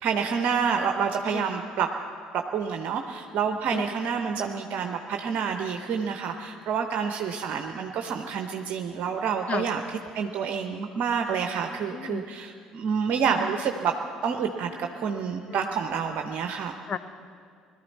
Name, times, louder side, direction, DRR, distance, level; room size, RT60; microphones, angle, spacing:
voice 1, 0.0-1.9 2.3-9.8 10.1-13.9 14.2-16.7, right 6 dB, 50° right, 5 dB, 0.7 m, -28 dB
voice 2, 1.3-1.6 3.7-3.8 9.5-9.7 11.9-12.2 15.5-15.6 16.9-17.0, left 6 dB, 40° left, 11 dB, 0.7 m, -33 dB
21.0 x 13.0 x 4.2 m, 2.2 s
figure-of-eight pair, 55°, 3 cm